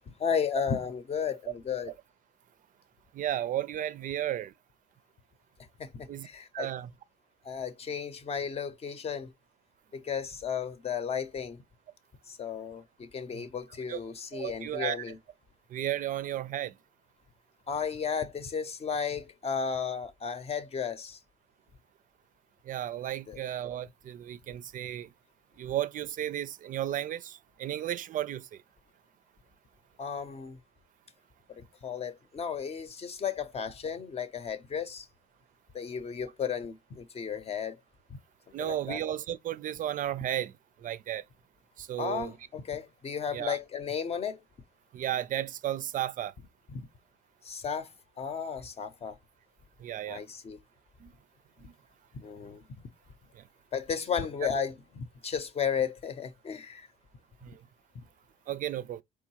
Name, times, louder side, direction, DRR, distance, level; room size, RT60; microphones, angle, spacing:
voice 1, 0.1-1.9 5.8-6.7 7.4-9.3 9.9-11.6 12.3-15.2 17.7-21.2 23.3-23.4 30.0-30.6 31.6-35.1 35.7-37.8 38.6-39.0 42.0-44.4 46.7-46.8 47.4-47.9 48.2-49.2 50.1-50.6 52.2-52.6 53.7-56.9, left 7 dB, 35° left, 0.7 m, -34 dB
voice 2, 3.1-4.5 6.1-6.3 6.5-6.9 13.3-13.4 13.9-14.0 14.3-15.0 15.7-16.7 22.7-25.1 25.6-28.5 38.5-40.5 40.8-41.2 41.8-42.3 43.3-43.6 44.9-46.3 49.8-50.2 51.0-51.1 51.6-51.7 57.4-57.6 58.5-59.0, right 12 dB, 50° right, 0.4 m, -33 dB
4.6 x 3.6 x 2.9 m
cardioid pair, 110°, 17 cm